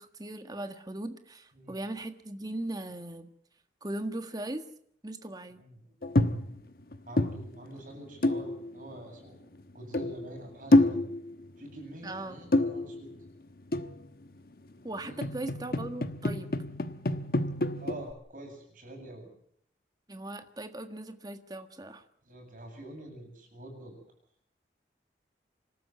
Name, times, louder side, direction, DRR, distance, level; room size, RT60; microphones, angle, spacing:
voice 1, 0.0-3.3 3.8-4.6 5.0-5.6 12.0-12.4 14.8-16.5 20.1-22.0, right 1 dB, 20° right, 8 dB, 1.6 m, -38 dB
sound 1, 6.0-6.6 6.9-7.8 8.2-9.0 9.5-9.6 9.8-10.4 10.7-11.5 12.4-13.3 13.7-14.3 15.0-18.1, left 1 dB, 55° left, 1.1 m, -28 dB
voice 2, 7.1-9.4 9.7-11.0 11.6-13.1 15.0-15.3 17.8-19.3 22.2-23.9, right 1 dB, 50° right, 2 dB, 7.9 m, -46 dB
26.5 x 13.0 x 9.4 m, 0.66 s
head